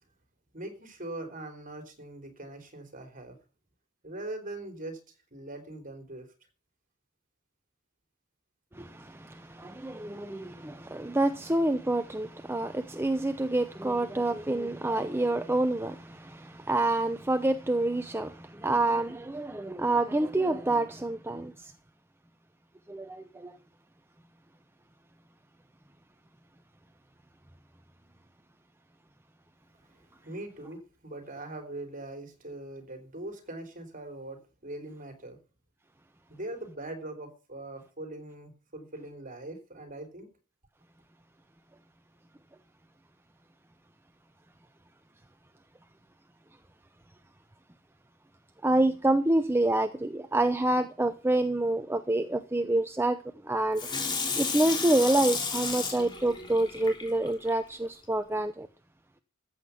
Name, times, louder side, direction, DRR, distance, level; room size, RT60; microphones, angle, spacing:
voice 1, 0.5-3.4 4.0-5.0 5.3-6.3 30.2-35.4 36.3-40.3, right 2 dB, 40° right, 3.5 m, -41 dB
voice 2, 8.8-21.7 22.9-23.5 48.6-53.2 53.4-53.9 54.4-58.7, right 2 dB, 10° right, 0.7 m, -27 dB
Water tap faucet / Sink (filling or washing), 53.8-57.5 58.0-58.1, left 4 dB, 20° left, 3.2 m, -33 dB
14.0 x 8.3 x 5.8 m
head